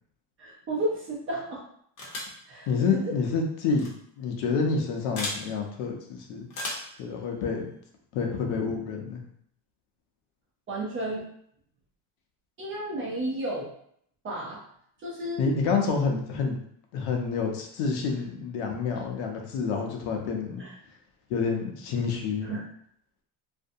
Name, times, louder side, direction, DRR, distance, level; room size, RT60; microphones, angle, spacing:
voice 1, 0.4-1.6 2.5-3.1 10.7-11.2 12.6-13.7 14.2-14.6 15.0-15.4 20.6-20.7 22.4-22.6, right 1 dB, 25° right, -4 dB, 0.5 m, -32 dB
sound 1, 2.0-2.4 3.7-3.9 5.2-5.4 6.5-6.9, left 2 dB, 40° left, 0.7 m, -34 dB
voice 2, 2.7-3.9 4.2-6.5 7.0-7.7 8.1-9.2 15.4-16.6 16.9-20.6 21.3-22.5, left 5 dB, 80° left, 2 dB, 0.7 m, -28 dB
2.5 x 2.1 x 2.6 m, 0.67 s
cardioid pair, 150°, 50 cm